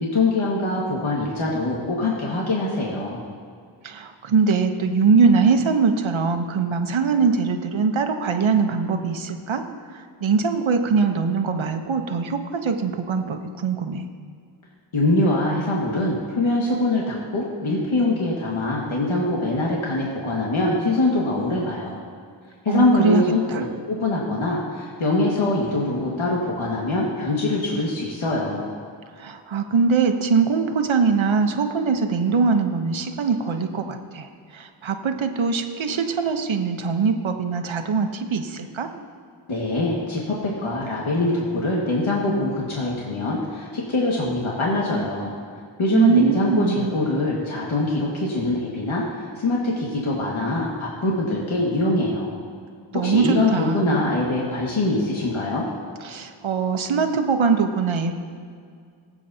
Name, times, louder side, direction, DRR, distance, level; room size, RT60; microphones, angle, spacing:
voice 1, 0.0-3.2 14.9-22.0 22.6-28.7 39.5-45.3 45.8-52.3 52.9-55.6, left 2 dB, 75° left, -4 dB, 1.9 m, -23 dB
voice 2, 3.8-14.1 22.7-23.6 29.2-38.9 45.9-46.9 52.9-54.0 56.0-58.1, right 5 dB, 70° right, 5 dB, 1.0 m, -22 dB
19.5 x 8.3 x 2.8 m, 2.2 s
cardioid pair, 40°, 48 cm